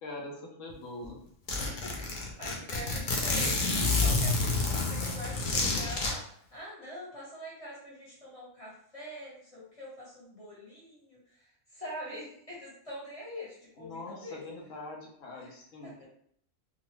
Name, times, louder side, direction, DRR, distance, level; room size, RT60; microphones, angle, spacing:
voice 1, 0.0-1.2 13.8-16.0, left 2 dB, 75° left, 0 dB, 1.1 m, -43 dB
Zipper (clothing), 0.7-0.8 1.0-1.1 1.5-6.1, left 3 dB, 50° left, 0.6 m, -29 dB
voice 2, 1.5-14.4 15.4-15.5 15.8-16.0, equal, 30° left, -7 dB, 1.2 m, -44 dB
2.7 x 2.4 x 3.0 m, 0.66 s
omnidirectional pair, 1.3 m